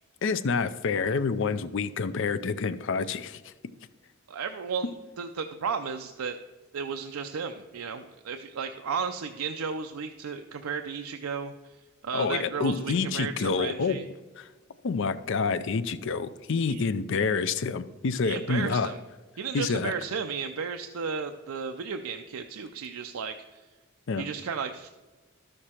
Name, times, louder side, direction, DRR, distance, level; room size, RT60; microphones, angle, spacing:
voice 1, 0.2-3.5 12.1-14.0 14.4-14.5 14.8-18.9 19.5-19.9 24.1-24.2, left 5 dB, 60° left, 13 dB, 0.5 m, -28 dB
voice 2, 4.3-6.4 6.7-11.8 12.0-14.1 16.7-16.8 18.2-19.0 19.4-23.6 24.2-24.9, right 6 dB, 90° right, 6 dB, 0.5 m, -34 dB
12.5 x 6.6 x 4.3 m, 1.2 s
head